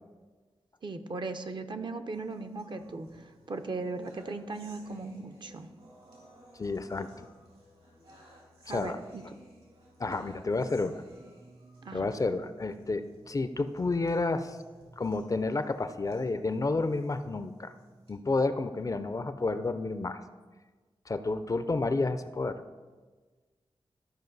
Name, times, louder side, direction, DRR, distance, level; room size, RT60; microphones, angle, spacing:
voice 1, 0.8-5.7 8.7-9.2 11.8-12.1, right 3 dB, 55° right, 7 dB, 0.6 m, -38 dB
sound 1, 2.1-18.1, right 1 dB, 75° right, 2.6 m, -57 dB
voice 2, 6.6-7.3 8.7-9.0 10.0-11.0 11.9-14.6 15.0-17.7 18.1-20.2 21.1-22.6, left 3 dB, 35° left, 10 dB, 0.4 m, -30 dB
13.0 x 5.0 x 4.0 m, 1.4 s
wide cardioid pair, 90°, 10 cm